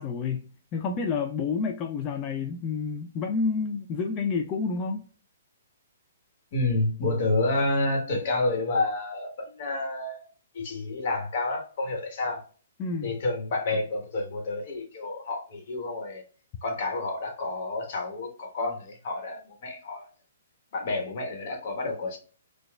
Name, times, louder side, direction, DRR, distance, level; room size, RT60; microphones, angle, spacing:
voice 1, 0.0-5.0 12.8-13.2, left 5 dB, 25° left, 0.3 m, -29 dB
voice 2, 6.5-10.3 10.5-12.4 13.0-16.2 16.6-20.1 20.7-22.2, left 2 dB, 50° left, 1.1 m, -29 dB
4.6 x 2.3 x 2.2 m
hypercardioid pair, 145°, 0 cm